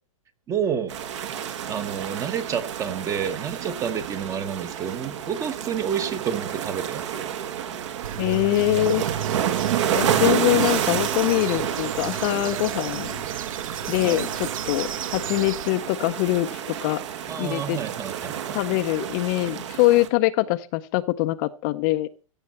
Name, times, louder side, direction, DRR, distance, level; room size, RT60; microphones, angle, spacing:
voice 1, 0.5-0.9 1.7-7.3 14.0-14.3 17.3-18.6, right 8 dB, 20° right, 11 dB, 1.1 m, -29 dB
sound 1, 0.9-20.1, right 9 dB, 60° right, 1.8 m, -29 dB
sound 2, 8.0-15.7, right 9 dB, 75° right, 0.6 m, -34 dB
voice 2, 8.2-9.0 9.9-13.2 13.9-17.0 17.4-17.8 18.5-22.1, left 17 dB, 35° left, 10 dB, 0.6 m, -23 dB
15.5 x 6.4 x 5.6 m, 0.35 s
hypercardioid pair, 145°, 17 cm